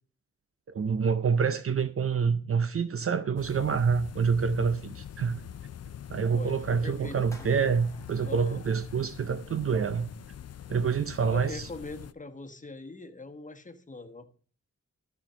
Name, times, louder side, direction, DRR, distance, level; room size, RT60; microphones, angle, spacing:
voice 1, 0.7-5.4 6.1-10.1 10.7-11.7, right 6 dB, 50° right, 0.6 m, -27 dB
sound 1, 3.4-12.1, left 10 dB, 60° left, 0.5 m, -44 dB
voice 2, 6.3-7.5 8.2-8.6 11.3-14.3, left 3 dB, 25° left, 1.3 m, -42 dB
sound 2, 7.3-9.5, left 1 dB, 10° left, 1.6 m, -55 dB
13.0 x 4.4 x 5.5 m
wide cardioid pair, 85°, 29 cm